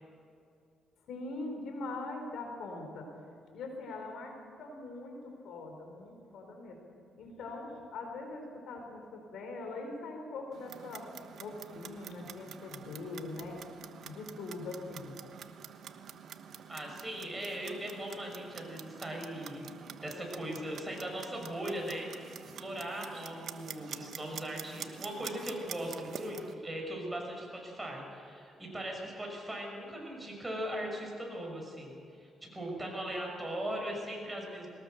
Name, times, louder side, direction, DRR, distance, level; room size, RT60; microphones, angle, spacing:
voice 1, 1.1-3.1 3.5-6.8 7.2-11.1 11.4-13.6 14.0-15.2, left 3 dB, 75° left, 3 dB, 4.5 m, -42 dB
Clock, 10.5-26.5, right 8 dB, 65° right, 1.2 m, -47 dB
voice 2, 16.7-19.7 20.0-34.7, right 1 dB, 15° right, 0 dB, 6.6 m, -39 dB
22.0 x 19.5 x 6.7 m, 2.5 s
cardioid pair, 90°, 0 cm